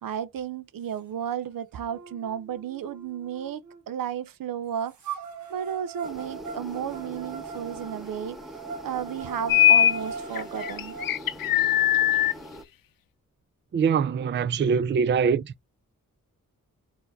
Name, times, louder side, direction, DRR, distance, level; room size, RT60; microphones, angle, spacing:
voice 1, 0.0-5.2 5.5-8.4 8.8-11.0, right 9 dB, 80° right, 0.6 m, -33 dB
sound 1, 1.2-1.3 1.9-3.8 5.0-11.1, right 5 dB, 60° right, 1.2 m, -40 dB
sound 2, 6.0-12.6, equal, ahead, 1.0 m, -42 dB
sound 3, 9.5-10.0 10.4-12.3, left 12 dB, 85° left, 0.5 m, -20 dB
voice 2, 13.7-15.4, right 6 dB, 35° right, 0.4 m, -23 dB
4.6 x 2.8 x 3.9 m
cardioid pair, 70°, 34 cm